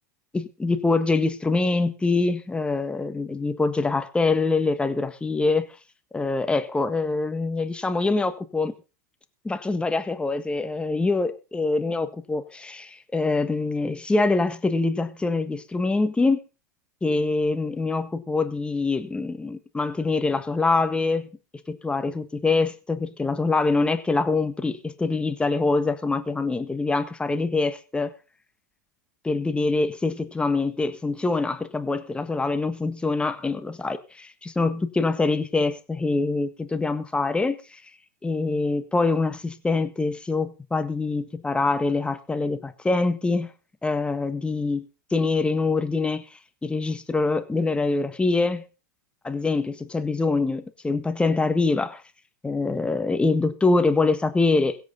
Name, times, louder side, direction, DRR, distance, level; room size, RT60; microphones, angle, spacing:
voice 1, 0.3-5.6 6.1-8.7 9.4-16.4 17.0-21.3 21.7-28.1 29.2-37.8 38.2-43.5 43.8-44.8 45.1-46.2 46.6-48.6 49.2-52.0 52.4-54.8, left 3 dB, 10° left, 1.5 m, -24 dB
22.5 x 8.1 x 4.0 m
hypercardioid pair, 95°, 10 cm